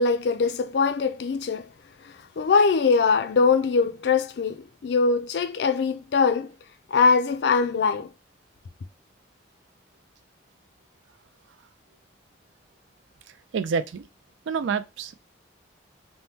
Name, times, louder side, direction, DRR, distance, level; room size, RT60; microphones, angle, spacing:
voice 1, 0.0-1.7 2.4-6.5 6.9-8.1, left 4 dB, 60° left, 0.4 m, -22 dB
voice 2, 13.5-14.0 14.5-15.1, right 6 dB, 75° right, 0.4 m, -27 dB
3.5 x 2.1 x 2.8 m
head